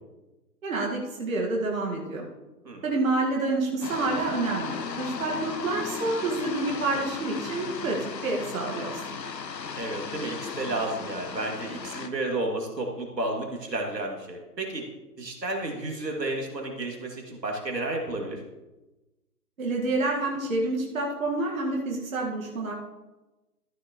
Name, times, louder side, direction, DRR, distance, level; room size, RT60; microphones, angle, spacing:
voice 1, 0.6-2.3 2.8-9.2 19.6-22.7, right 2 dB, 55° right, -1 dB, 1.8 m, -28 dB
sound 1, 3.8-12.1, left 5 dB, 80° left, 1.0 m, -36 dB
voice 2, 9.8-14.8 15.2-18.4, right 2 dB, 85° right, 1 dB, 2.6 m, -32 dB
14.0 x 6.9 x 3.1 m, 1.1 s
figure-of-eight pair, 150°, 49 cm